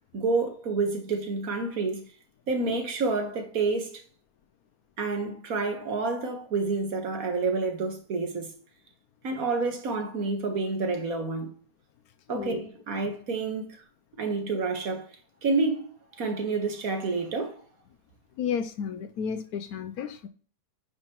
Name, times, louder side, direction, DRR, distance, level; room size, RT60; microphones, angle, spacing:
voice 1, 0.1-2.0 2.5-4.0 5.0-8.5 9.2-11.5 12.3-13.8 14.2-15.1 15.4-15.9 16.1-17.6, right 3 dB, 60° right, 1.7 m, -29 dB
voice 2, 12.3-12.7 18.4-20.3, left 7 dB, 70° left, 1.0 m, -32 dB
9.8 x 5.4 x 3.0 m
omnidirectional pair, 1.7 m